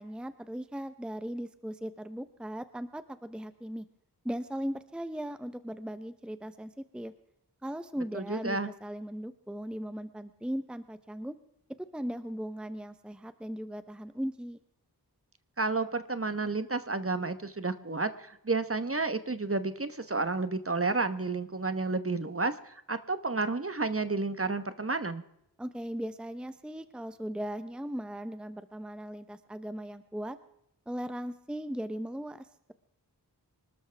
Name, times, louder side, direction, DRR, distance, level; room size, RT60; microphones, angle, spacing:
voice 1, 0.0-3.8 4.2-7.1 7.6-11.4 11.9-14.6 25.6-30.4 30.9-32.7, equal, ahead, 11 dB, 0.8 m, -38 dB
voice 2, 8.1-8.7 15.6-25.2, right 3 dB, 35° right, 11 dB, 1.1 m, -31 dB
25.5 x 12.5 x 3.4 m, 0.78 s
wide cardioid pair, 40°, 41 cm